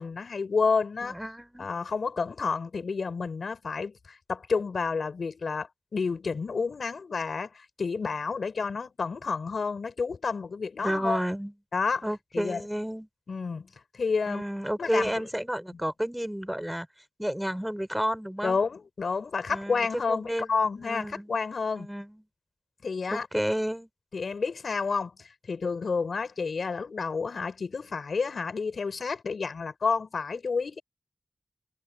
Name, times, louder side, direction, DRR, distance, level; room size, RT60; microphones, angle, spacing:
voice 1, 0.0-1.2 1.6-11.2 11.7-12.0 12.3-12.7 13.3-14.4 14.8-15.2 18.4-21.9 22.8-23.3 24.1-30.8, left 5 dB, 85° left, 5.4 m, -30 dB
voice 2, 1.1-1.7 10.8-11.5 12.0-13.1 14.3-16.9 17.2-18.6 19.5-21.4 21.8-22.2 23.1-23.9, equal, 5° right, 6.2 m, -31 dB
cardioid pair, 50°, 0 cm